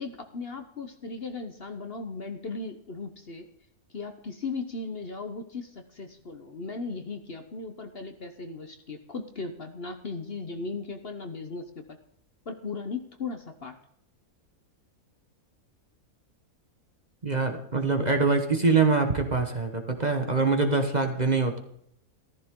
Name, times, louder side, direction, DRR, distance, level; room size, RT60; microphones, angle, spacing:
voice 1, 0.0-3.5 3.9-12.0 12.5-13.7, left 4 dB, 45° left, 7 dB, 1.2 m, -37 dB
voice 2, 17.2-21.6, right 4 dB, 30° right, 5 dB, 1.3 m, -24 dB
14.5 x 14.0 x 3.8 m, 0.71 s
omnidirectional pair, 1.5 m